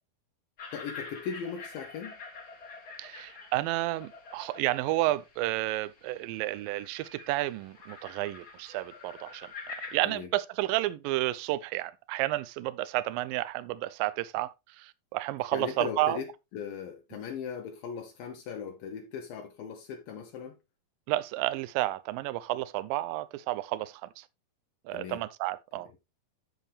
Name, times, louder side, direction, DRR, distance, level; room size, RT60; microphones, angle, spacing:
sound 1, 0.6-10.0, left 4 dB, 40° left, 1.5 m, -46 dB
voice 1, 0.7-2.2 10.0-10.3 15.5-20.6 24.9-25.3, left 7 dB, 75° left, 2.5 m, -38 dB
voice 2, 3.0-16.2 21.1-24.3 24.9-25.9, right 17 dB, 80° right, 2.2 m, -31 dB
13.0 x 4.7 x 3.2 m
omnidirectional pair, 4.5 m